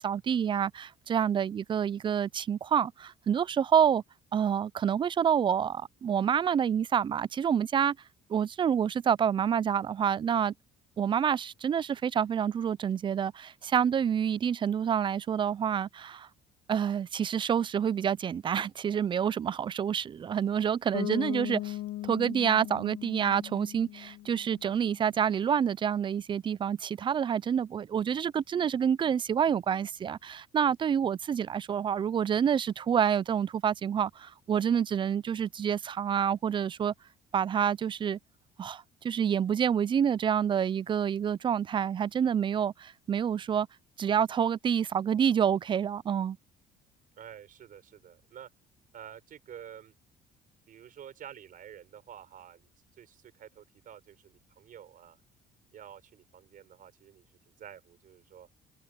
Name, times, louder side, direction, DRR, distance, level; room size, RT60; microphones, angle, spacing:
voice 1, 0.0-4.0 4.3-8.0 8.3-10.5 11.0-16.3 16.7-21.8 22.0-36.9 37.3-38.2 38.6-43.7 44.0-46.4, right 8 dB, 30° right, 0.3 m, -28 dB
Bass guitar, 20.9-24.8, left 14 dB, 90° left, 1.6 m, -38 dB
voice 2, 47.2-48.5 48.9-49.9 50.7-52.7 53.0-55.2 55.7-57.3 57.6-58.5, right 9 dB, 55° right, 5.8 m, -49 dB
cardioid pair, 110°, 17 cm